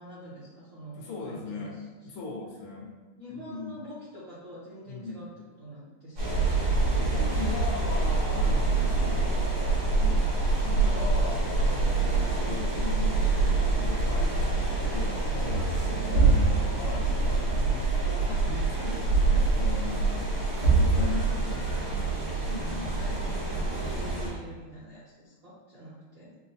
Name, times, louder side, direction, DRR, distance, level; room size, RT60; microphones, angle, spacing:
voice 1, 0.0-1.0 1.2-2.1 3.2-5.3 5.6-6.7 10.0-10.3 22.9-26.3, equal, 65° right, -9 dB, 0.8 m, -45 dB
voice 2, 1.0-1.8 2.0-2.9 3.3-3.7 4.9-5.2 7.0-10.2 10.5-20.3 20.7-22.0 22.4-23.6 24.1-24.3, left 3 dB, 80° left, -3 dB, 1.5 m, -39 dB
sound 1, 6.2-24.3, right 3 dB, 90° right, 2.3 m, -25 dB
5.2 x 2.0 x 2.6 m, 1.2 s
omnidirectional pair, 2.4 m